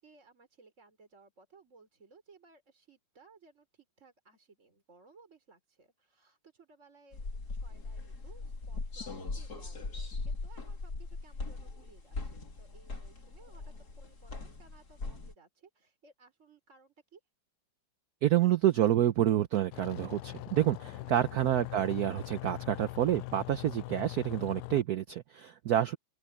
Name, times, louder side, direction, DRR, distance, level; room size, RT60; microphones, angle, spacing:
voice 1, 0.0-17.2 21.0-21.2, right 4 dB, 35° right, 4.7 m, -61 dB
sound 1, 7.1-15.3, left 3 dB, 50° left, 3.5 m, -40 dB
voice 2, 18.2-26.0, right 12 dB, 65° right, 1.0 m, -28 dB
sound 2, 19.7-24.8, left 18 dB, 80° left, 0.9 m, -42 dB
open air
omnidirectional pair, 2.2 m